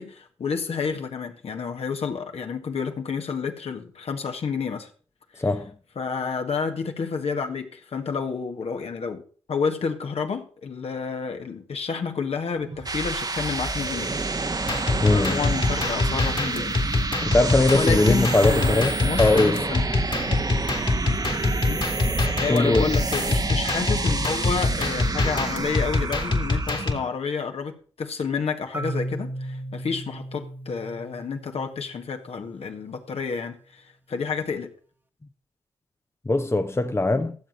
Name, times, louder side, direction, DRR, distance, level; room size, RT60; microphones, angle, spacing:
voice 1, 0.0-4.9 5.3-5.5 6.0-9.2 9.5-14.1 15.1-16.8 17.7-19.8 20.1-20.3 21.7-21.8 22.4-34.7, left 5 dB, 65° left, 1.8 m, -30 dB
voice 2, 5.4-5.7 15.0-15.4 17.2-19.7 22.5-22.9 36.2-37.4, left 2 dB, 20° left, 1.0 m, -21 dB
sound 1, 12.6-27.1, right 3 dB, 35° right, 1.2 m, -29 dB
sound 2, 14.6-26.9, left 3 dB, 45° left, 2.5 m, -25 dB
Marimba xylophone, 28.7-32.6, right 1 dB, 15° right, 1.5 m, -36 dB
14.0 x 7.5 x 5.4 m
supercardioid pair, 40°, 11 cm